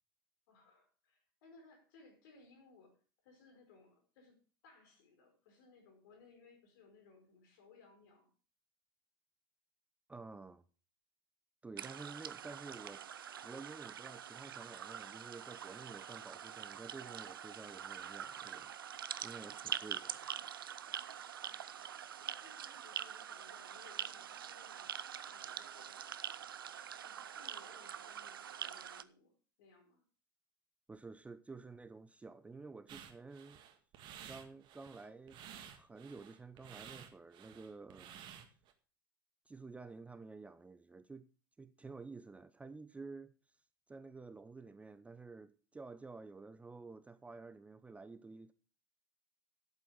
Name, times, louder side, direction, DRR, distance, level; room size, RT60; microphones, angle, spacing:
voice 1, 0.5-3.0 3.2-4.4 4.6-8.3 21.5-21.8 22.2-24.9 25.2-26.0 27.0-30.0, left 4 dB, 55° left, 5.0 m, -63 dB
voice 2, 10.1-10.6 11.6-13.0 13.3-18.7 19.2-20.2 30.9-33.6 34.3-35.5 35.7-38.2 39.5-41.3 41.6-43.3 43.9-48.5, right 4 dB, 10° right, 0.7 m, -51 dB
sound 1, 11.8-29.0, right 9 dB, 70° right, 0.6 m, -45 dB
sound 2, 32.9-38.7, right 9 dB, 40° right, 1.8 m, -53 dB
12.0 x 8.3 x 5.1 m
figure-of-eight pair, 80°, 12 cm